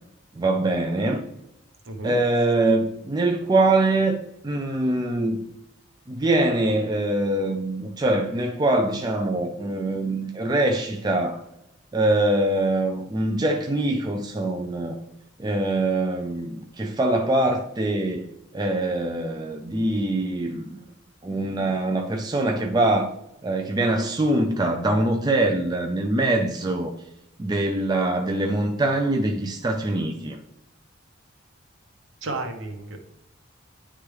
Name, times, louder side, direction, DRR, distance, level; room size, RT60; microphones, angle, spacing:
voice 1, 0.4-1.2 2.0-4.2 4.4-5.4 6.1-11.4 11.9-15.0 15.4-18.2 18.5-20.8 21.2-23.1 23.4-26.9 27.4-30.4, right 2 dB, 20° right, 0.4 m, -23 dB
voice 2, 1.8-2.2 32.2-33.0, right 2 dB, 70° right, 1.0 m, -32 dB
9.9 x 3.4 x 3.3 m
head